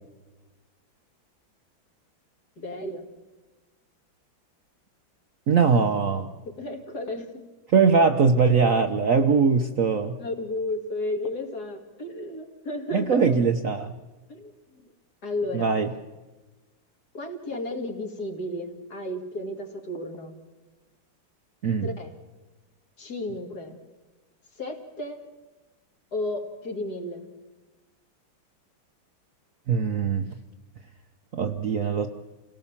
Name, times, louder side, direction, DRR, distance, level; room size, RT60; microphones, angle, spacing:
voice 1, 2.6-3.1 6.4-7.4 10.2-13.3 14.3-14.5 15.2-15.8 17.1-20.3 21.8-22.2 23.0-23.8 24.6-25.2 26.1-27.3, left 1 dB, 50° left, 4 dB, 2.6 m, -33 dB
voice 2, 5.5-6.3 7.7-10.2 12.9-13.9 15.5-15.9 21.6-21.9 29.7-30.3 31.3-32.1, right 5 dB, 55° right, 6 dB, 1.0 m, -21 dB
28.0 x 17.5 x 7.2 m, 1.2 s
omnidirectional pair, 2.2 m